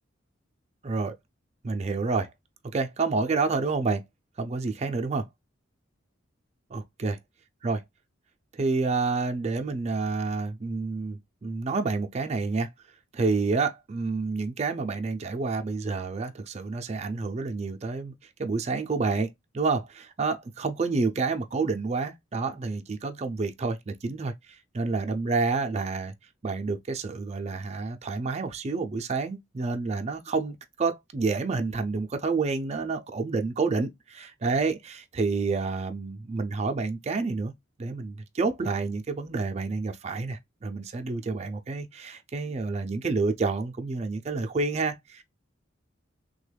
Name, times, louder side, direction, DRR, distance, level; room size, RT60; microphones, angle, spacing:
voice 1, 0.8-1.1 1.6-2.3 2.7-4.0 4.4-5.3 6.7-7.1 7.6-7.8 8.5-12.7 13.1-18.1 18.4-26.1 26.4-37.5 37.8-45.2, right 4 dB, 35° right, 0.4 m, -29 dB
3.4 x 2.2 x 3.2 m
head